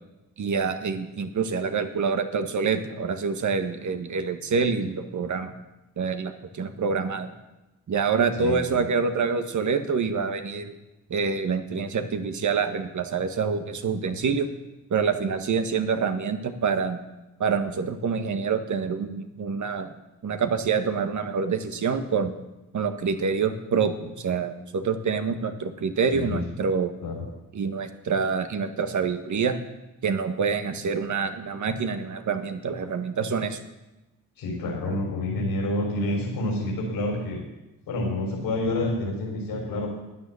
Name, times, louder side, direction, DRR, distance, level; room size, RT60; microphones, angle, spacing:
voice 1, 0.4-5.5 6.0-7.3 7.9-10.7 11.1-14.5 14.9-17.0 17.4-19.9 20.2-22.3 22.7-26.9 27.5-29.5 30.0-33.6 34.8-35.0, right 5 dB, 55° right, 8 dB, 1.6 m, -26 dB
voice 2, 8.4-8.8 26.1-26.4 27.0-27.2 34.4-37.4 37.9-39.9, left 2 dB, 80° left, -2 dB, 3.8 m, -28 dB
12.5 x 9.8 x 7.0 m, 1.0 s
supercardioid pair, 60°, 35 cm